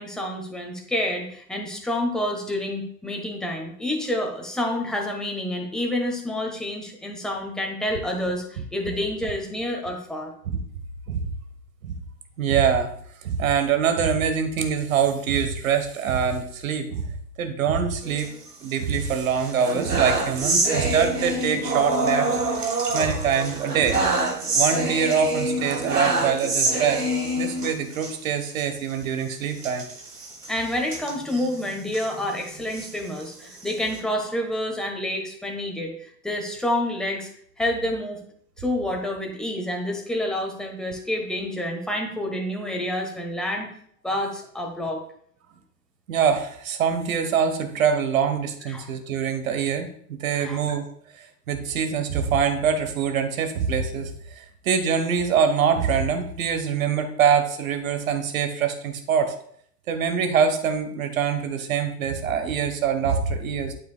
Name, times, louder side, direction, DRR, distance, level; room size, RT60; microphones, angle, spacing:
voice 1, 0.0-10.3 30.5-37.3 37.6-38.2 38.6-43.7 44.0-45.0 48.6-48.9 50.3-50.6, left 1 dB, ahead, 1 dB, 1.1 m, -28 dB
voice 2, 12.4-12.9 13.2-17.1 17.4-18.3 18.6-22.3 22.6-24.0 24.5-27.0 27.4-29.8 46.1-50.9 51.5-54.1 54.4-59.3 59.9-63.7, right 7 dB, 55° right, 7 dB, 1.2 m, -24 dB
sound 1, 18.0-19.0 19.3-28.1 28.5-28.6 28.9-29.0 29.6-32.1 32.6-34.0, right 2 dB, 75° right, 1.8 m, -26 dB
12.0 x 5.0 x 2.2 m, 0.62 s
figure-of-eight pair, 95°, 48 cm